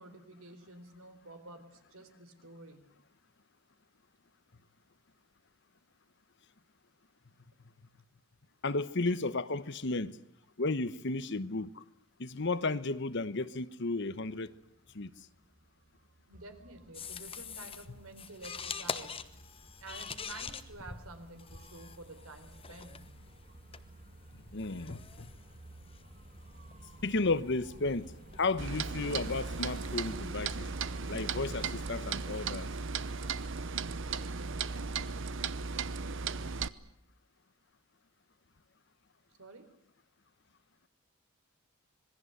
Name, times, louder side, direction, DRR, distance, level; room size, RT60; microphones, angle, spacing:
voice 1, 0.0-2.8 16.3-19.2 19.8-23.1 39.4-39.7, right 2 dB, 85° right, 4.0 m, -50 dB
voice 2, 8.6-10.2 10.6-11.8 12.2-14.5 14.9-15.1 24.5-25.3 27.0-30.7 31.1-32.7, left 3 dB, 55° left, 1.0 m, -33 dB
sound 1, 14.1-31.1, right 1 dB, 40° right, 1.7 m, -54 dB
sound 2, 16.9-33.5, left 6 dB, 25° left, 1.2 m, -47 dB
Clock, 28.6-36.7, right 5 dB, 60° right, 0.9 m, -36 dB
26.5 x 21.0 x 8.0 m
head